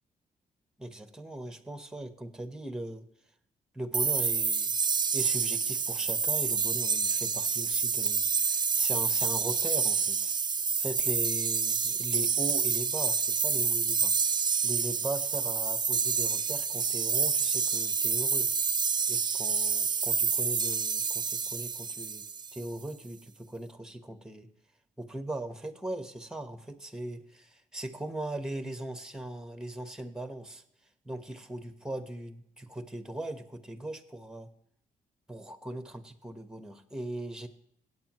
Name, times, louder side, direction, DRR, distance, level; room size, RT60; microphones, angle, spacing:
voice 1, 0.8-3.1 3.7-4.7 5.1-10.3 10.8-14.2 14.6-18.5 19.1-24.5 25.0-30.6 31.0-34.5 35.3-37.5, right 1 dB, 5° right, 9 dB, 1.2 m, -39 dB
sound 1, 3.9-22.6, right 5 dB, 30° right, 0.5 m, -28 dB
16.0 x 8.5 x 3.1 m, 0.72 s
cardioid pair, 95°, 15 cm